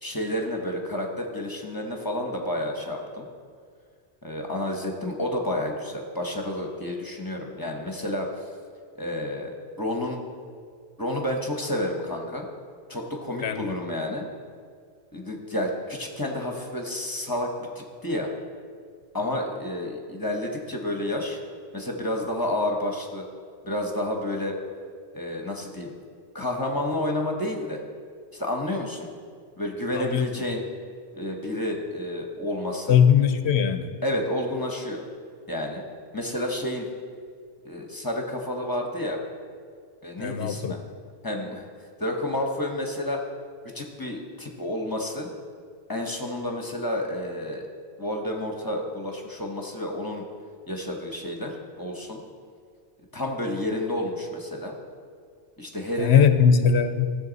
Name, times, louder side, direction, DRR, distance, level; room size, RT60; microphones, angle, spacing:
voice 1, 0.0-3.3 4.2-8.3 9.0-10.2 11.0-12.4 12.9-14.2 15.1-18.3 19.1-21.4 21.7-23.2 23.6-24.5 25.1-25.9 26.3-27.8 28.3-29.1 29.6-30.6 31.1-33.0 34.0-35.0 35.5-35.9 36.1-36.9 37.6-39.2 40.0-40.8 41.2-41.7 42.0-43.2 43.6-45.3 45.9-47.7 48.0-50.2 50.7-52.2 53.1-54.8 55.6-56.3, left 1 dB, 20° left, 1 dB, 1.1 m, -30 dB
voice 2, 13.4-13.8 30.0-30.3 32.9-33.9 40.2-40.8 56.0-57.2, left 7 dB, 80° left, 9 dB, 0.9 m, -20 dB
15.0 x 7.0 x 4.0 m, 2.1 s
omnidirectional pair, 1.1 m